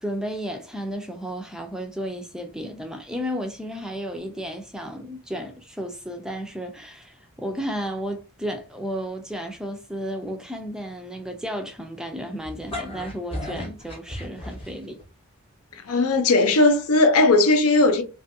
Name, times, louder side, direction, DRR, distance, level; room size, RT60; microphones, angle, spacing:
voice 1, 0.0-15.0, equal, 5° right, 0.3 m, -33 dB
sound 1, 12.4-15.0, left 1 dB, 25° left, 0.8 m, -34 dB
voice 2, 15.7-18.0, left 2 dB, 85° left, 0.6 m, -18 dB
2.6 x 2.4 x 2.6 m
head